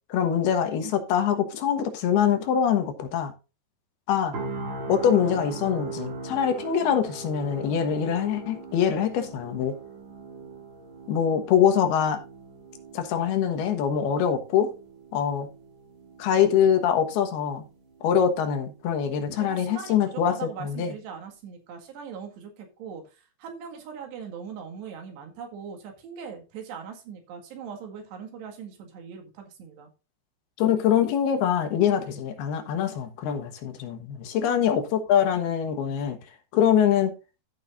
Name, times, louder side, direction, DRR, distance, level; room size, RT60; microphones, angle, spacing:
voice 1, 0.1-3.3 4.1-4.3 4.9-9.8 11.1-12.2 12.9-14.7 15.1-15.5 16.2-17.7 18.0-20.9 30.6-36.2 36.5-37.1, left 8 dB, 75° left, 3.2 m, -24 dB
sound 1, 4.3-18.3 18.7-18.9, right 4 dB, 40° right, 1.8 m, -40 dB
voice 2, 19.4-29.9 34.5-34.6, right 7 dB, 85° right, 4.1 m, -40 dB
14.5 x 6.3 x 2.5 m
omnidirectional pair, 4.7 m